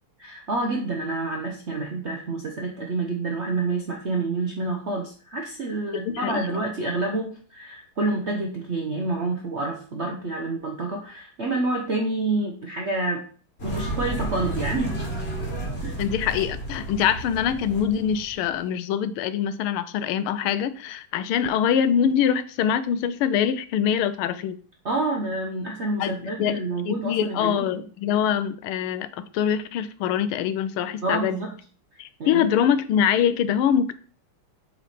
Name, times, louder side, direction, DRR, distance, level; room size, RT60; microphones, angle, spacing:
voice 1, 0.2-13.2 13.6-15.0 15.8-15.9 24.8-27.7 31.0-31.5 32.2-32.5, right 2 dB, 60° right, 1 dB, 0.7 m, -28 dB
voice 2, 5.9-6.6 16.0-24.6 26.0-29.1 29.3-31.4 32.0-33.9, left 8 dB, 85° left, 13 dB, 1.5 m, -24 dB
sound 1, 13.6-18.5, right 2 dB, 30° left, 1.9 m, -31 dB
7.8 x 3.2 x 4.2 m, 0.41 s
omnidirectional pair, 2.3 m